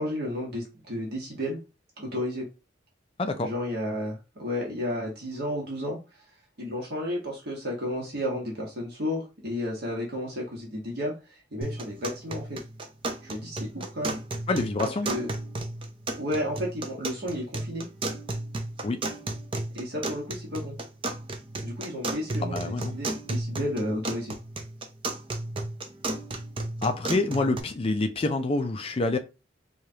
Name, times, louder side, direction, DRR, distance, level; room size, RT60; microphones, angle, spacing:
voice 1, 0.0-1.6 2.0-2.5 3.4-6.0 6.6-12.6 13.2-14.2 14.8-15.3 16.1-17.9 19.7-20.8 21.6-24.4, left 1 dB, 60° right, 1.2 m, -32 dB
voice 2, 3.2-3.5 14.5-15.1 18.8-19.0 22.4-23.0 26.8-29.2, left 2 dB, 30° left, 0.4 m, -27 dB
sound 1, 11.6-27.6, right 2 dB, 30° right, 0.5 m, -34 dB
4.8 x 2.3 x 2.8 m
head